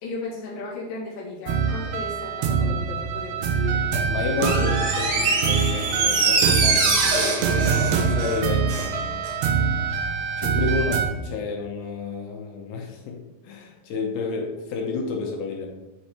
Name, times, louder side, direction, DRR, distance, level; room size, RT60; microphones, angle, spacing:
voice 1, 0.0-3.8, left 3 dB, 50° left, -6 dB, 1.4 m, -35 dB
sound 1, 1.5-11.1, right 6 dB, 90° right, 1.9 m, -25 dB
voice 2, 3.9-9.2 10.4-13.2 13.4-15.7, left 5 dB, 75° left, 1 dB, 2.5 m, -30 dB
Door, 4.3-8.9 9.2-9.3, right 4 dB, 75° right, 3.0 m, -23 dB
8.6 x 3.2 x 4.3 m, 1.1 s
omnidirectional pair, 4.7 m